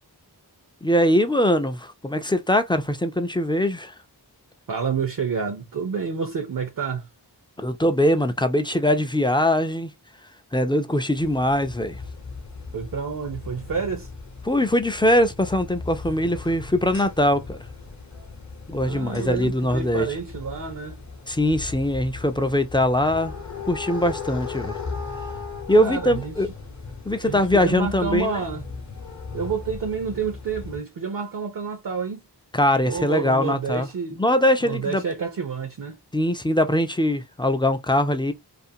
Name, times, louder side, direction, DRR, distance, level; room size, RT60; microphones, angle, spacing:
voice 1, 0.8-3.9 7.6-9.9 10.5-12.0 14.4-17.6 18.7-20.1 21.3-23.3 23.7-24.8 25.7-26.5 27.1-28.3 32.5-33.9 34.2-35.0 36.1-38.3, left 1 dB, 10° left, 0.3 m, -22 dB
voice 2, 4.7-7.1 12.7-14.1 18.8-21.0 25.7-26.4 27.2-28.6 29.3-32.2 32.9-34.2 34.6-36.0, right 5 dB, 55° right, 0.5 m, -29 dB
sound 1, 11.1-30.8, left 4 dB, 45° left, 0.8 m, -37 dB
2.5 x 2.5 x 2.6 m
wide cardioid pair, 65°, 41 cm